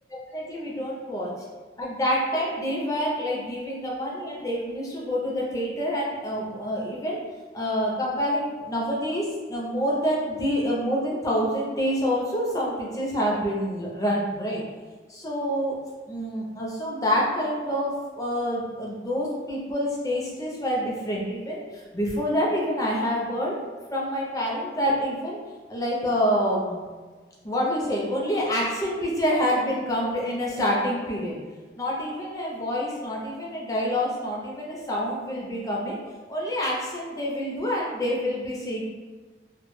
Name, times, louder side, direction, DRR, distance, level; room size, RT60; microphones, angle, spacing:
voice 1, 0.3-1.3 1.8-7.2 7.5-14.6 15.1-15.8 16.1-23.6 23.9-25.4 25.7-26.8 27.4-31.4 31.8-36.0 36.3-38.8, equal, 20° left, -4 dB, 0.4 m, -27 dB
2.1 x 2.1 x 3.0 m, 1.4 s
head